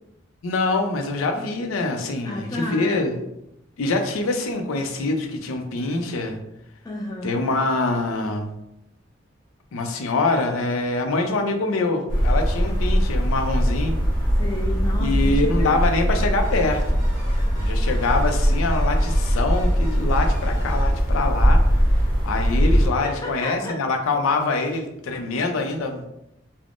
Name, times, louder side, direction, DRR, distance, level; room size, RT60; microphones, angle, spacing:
voice 1, 0.4-3.2 3.8-6.4 7.2-8.5 9.7-14.0 15.0-17.0 17.6-21.6 22.2-26.0, left 3 dB, 85° left, 5 dB, 0.4 m, -24 dB
voice 2, 2.2-3.1 6.8-7.4 14.4-15.8 23.0-23.7, left 1 dB, 20° left, -1 dB, 0.3 m, -31 dB
sound 1, 12.1-22.9, equal, 45° left, 1.2 m, -21 dB
sound 2, 16.4-21.8, equal, 65° left, 0.8 m, -45 dB
3.4 x 2.0 x 2.4 m, 0.82 s
head